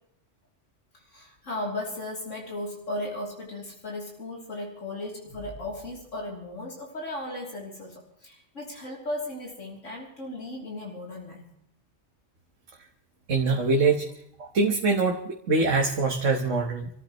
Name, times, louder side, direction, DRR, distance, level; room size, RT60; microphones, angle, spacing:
voice 1, 0.9-11.4, left 1 dB, 85° left, -3 dB, 3.6 m, -36 dB
voice 2, 13.3-14.1 14.4-16.9, right 3 dB, 85° right, 1 dB, 1.8 m, -24 dB
27.5 x 14.5 x 3.1 m, 0.71 s
omnidirectional pair, 1.3 m